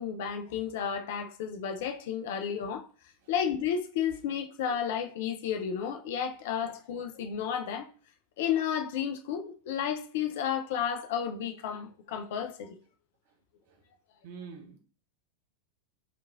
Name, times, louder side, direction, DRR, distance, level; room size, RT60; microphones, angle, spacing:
voice 1, 0.0-2.9 3.3-7.9 8.4-12.7, left 8 dB, 55° left, 0.4 m, -32 dB
voice 2, 14.2-14.8, right 6 dB, 50° right, 0.7 m, -45 dB
3.0 x 2.4 x 3.4 m
figure-of-eight pair, 90°, 0 cm